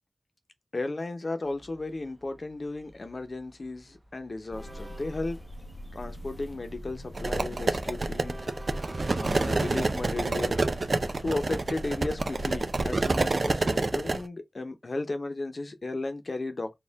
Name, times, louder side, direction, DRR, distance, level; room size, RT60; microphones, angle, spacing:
voice 1, 0.7-5.4 5.9-8.4 8.7-10.6 11.2-16.8, left 2 dB, 65° left, 0.8 m, -35 dB
Train, 1.4-10.1, right 1 dB, 30° right, 0.8 m, -50 dB
sound 1, 4.5-13.1, equal, 30° left, 0.6 m, -42 dB
sound 2, 7.1-14.2, right 3 dB, 75° right, 0.4 m, -28 dB
4.3 x 2.4 x 3.5 m
wide cardioid pair, 65°, 0 cm